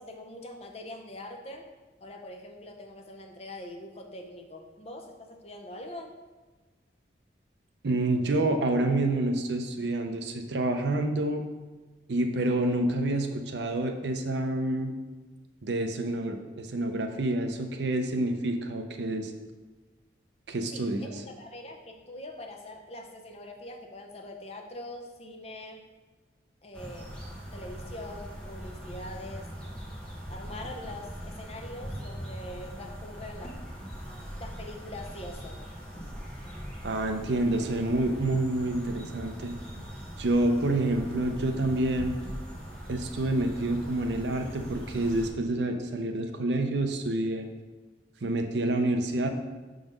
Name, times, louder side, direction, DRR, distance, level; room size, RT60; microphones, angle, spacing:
voice 1, 0.0-1.7 2.0-6.1 20.7-25.8 26.6-27.1 27.5-29.5 30.3-33.6 34.4-35.6, left 1 dB, 35° left, 3 dB, 0.7 m, -43 dB
voice 2, 7.8-11.4 12.1-14.9 15.6-19.3 20.5-21.2 36.8-39.5 40.2-42.2 42.9-47.5 48.2-49.3, right 2 dB, 70° right, 5 dB, 0.6 m, -28 dB
sound 1, 26.7-45.3, equal, 5° left, 1.0 m, -41 dB
6.0 x 3.9 x 5.1 m, 1.3 s
head